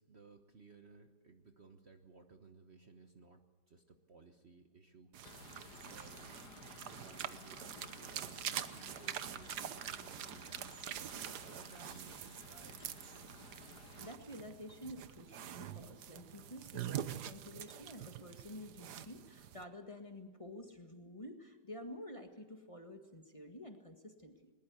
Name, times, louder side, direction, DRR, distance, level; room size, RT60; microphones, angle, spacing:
voice 1, 0.0-5.1 5.9-6.5 6.8-10.7 11.0-13.1, right 4 dB, 40° right, 6 dB, 1.3 m, -59 dB
sound 1, 5.1-19.6, right 10 dB, 70° right, 1.4 m, -45 dB
sound 2, 5.3-14.1, left 5 dB, 70° left, 2.0 m, -56 dB
voice 2, 14.0-24.5, left 1 dB, 20° left, 5 dB, 1.7 m, -50 dB
21.0 x 20.0 x 8.2 m, 1.3 s
omnidirectional pair, 1.8 m